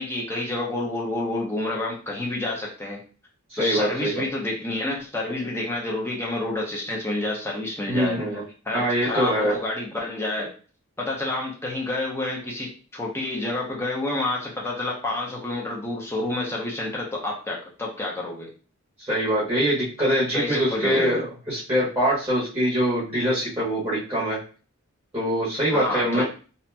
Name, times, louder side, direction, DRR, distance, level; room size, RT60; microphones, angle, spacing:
voice 1, 0.0-3.0 3.6-8.2 8.7-10.5 11.0-18.5 20.3-21.1 25.7-26.2, left 2 dB, 10° left, -3 dB, 0.7 m, -29 dB
voice 2, 3.5-4.2 7.9-8.4 8.7-9.5 19.1-24.4 25.1-26.2, equal, 15° right, -8 dB, 0.9 m, -23 dB
2.8 x 2.6 x 2.2 m, 0.37 s
head